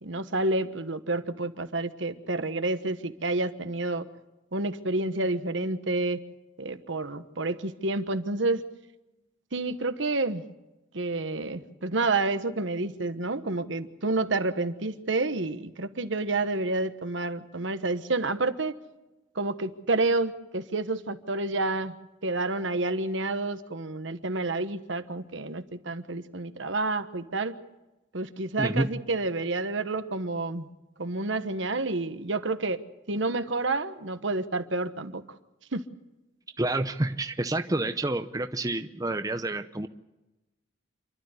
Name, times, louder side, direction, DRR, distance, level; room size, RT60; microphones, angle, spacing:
voice 1, 0.0-4.1 4.5-6.2 6.6-8.6 9.5-10.4 10.9-18.7 19.3-21.9 22.2-27.5 28.1-30.7 31.0-32.8 33.1-35.2 35.7-35.8, right 2 dB, 70° right, 10 dB, 1.3 m, -29 dB
voice 2, 28.6-28.9 36.6-39.9, right 2 dB, 20° right, 8 dB, 0.7 m, -28 dB
28.0 x 12.5 x 7.9 m, 1.0 s
head